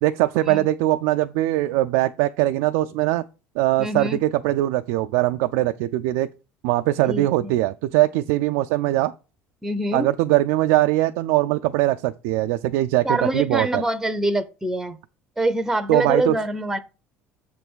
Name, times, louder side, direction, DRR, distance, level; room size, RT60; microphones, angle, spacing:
voice 1, 0.0-3.2 3.6-6.3 6.6-9.1 9.9-13.8 15.9-16.4, right 16 dB, 85° right, 0.4 m, -21 dB
voice 2, 3.8-4.2 7.1-7.6 9.6-10.1 13.0-15.0 15.4-16.8, right 1 dB, 5° right, 0.6 m, -25 dB
7.0 x 3.4 x 6.1 m
supercardioid pair, 115°, 6 cm